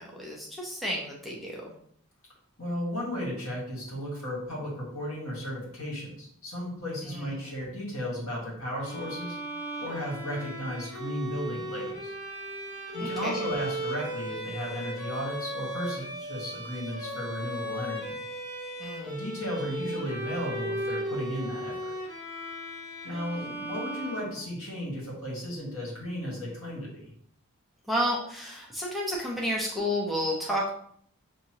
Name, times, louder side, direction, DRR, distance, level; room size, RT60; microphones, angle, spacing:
voice 1, 0.0-1.7 7.1-7.5 13.0-13.4 18.8-19.2 27.9-30.7, equal, ahead, -3 dB, 0.6 m, -31 dB
voice 2, 2.6-9.4 9.8-12.1 12.9-18.2 19.0-21.9 23.0-27.1, equal, 75° left, -4 dB, 1.8 m, -35 dB
Bowed string instrument, 8.8-24.8, right 1 dB, 20° left, 1.0 m, -36 dB
5.5 x 2.8 x 2.9 m, 0.65 s
head